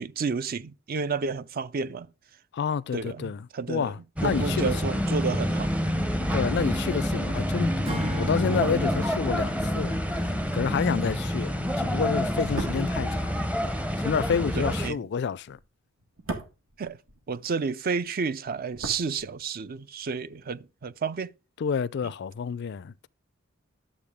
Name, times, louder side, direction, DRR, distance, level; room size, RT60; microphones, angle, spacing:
voice 1, 0.0-2.1 2.9-3.9 4.2-5.7 6.5-6.7 14.6-15.0 16.8-17.0 17.3-21.3, right 5 dB, 45° right, 0.5 m, -31 dB
voice 2, 2.5-4.7 6.3-13.4 14.0-15.6 21.6-23.1, left 6 dB, 55° left, 0.4 m, -29 dB
sound 1, 4.2-14.9, equal, 5° right, 0.6 m, -27 dB
Acoustic guitar / Strum, 7.9-11.3, right 1 dB, 30° right, 1.3 m, -36 dB
sound 2, 12.4-17.7 17.9-19.8 20.0-20.2, right 2 dB, 75° right, 1.7 m, -40 dB
11.5 x 7.2 x 3.6 m
head